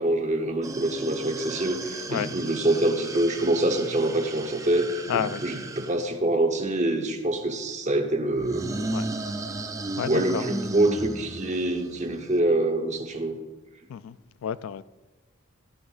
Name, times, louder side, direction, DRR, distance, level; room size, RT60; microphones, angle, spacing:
voice 1, 0.0-8.8 10.0-13.4, right 1 dB, 35° right, 1.0 m, -25 dB
sound 1, 0.6-6.0 8.4-12.4, right 2 dB, 15° right, 0.4 m, -36 dB
voice 2, 5.1-5.4 8.9-9.1 10.0-10.5 13.9-14.2 14.4-14.8, left 8 dB, 70° left, 0.3 m, -30 dB
14.0 x 9.6 x 2.5 m
head